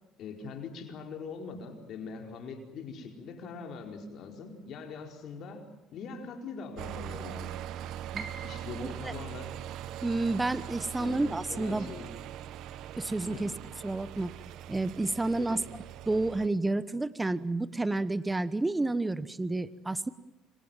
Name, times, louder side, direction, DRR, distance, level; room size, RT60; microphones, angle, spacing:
voice 1, 0.2-5.6 5.9-7.6 8.4-9.5 11.0-11.2 11.5-12.1 13.3-13.5 15.3-15.6, left 5 dB, 60° left, 3 dB, 4.6 m, -42 dB
sound 1, 6.8-16.5, right 11 dB, 70° right, 1.1 m, -41 dB
voice 2, 8.8-9.1 10.0-11.9 13.0-13.5 13.8-14.3 14.7-15.6 16.1-20.1, right 2 dB, 15° right, 15 dB, 1.1 m, -30 dB
Piano, 17.1-17.2, right 6 dB, 50° right, 3.2 m, -50 dB
27.0 x 25.0 x 7.5 m, 0.99 s
supercardioid pair, 80°, 0 cm